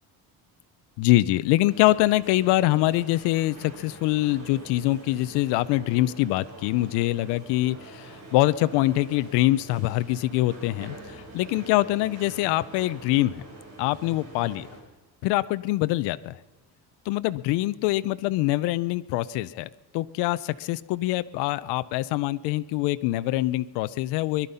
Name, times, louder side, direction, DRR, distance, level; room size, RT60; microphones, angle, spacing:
voice 1, 1.0-13.4 13.8-14.7 15.2-16.4 17.1-24.5, left 17 dB, 75° left, 14 dB, 0.6 m, -24 dB
sound 1, 1.7-14.8, right 2 dB, 40° right, 5.6 m, -45 dB
22.0 x 11.5 x 5.5 m, 1.2 s
cardioid pair, 175°, 41 cm